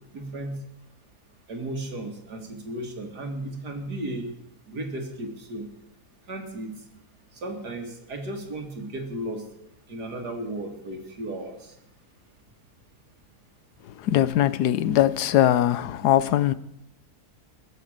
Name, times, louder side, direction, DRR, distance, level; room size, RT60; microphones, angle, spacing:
voice 1, 0.1-0.6 1.5-4.3 4.7-5.7 6.3-6.7 7.4-9.4 9.9-11.6, right 1 dB, 90° right, 2.9 m, -34 dB
voice 2, 14.0-16.5, left 12 dB, 90° left, 1.3 m, -21 dB
21.5 x 7.8 x 6.6 m
omnidirectional pair, 1.7 m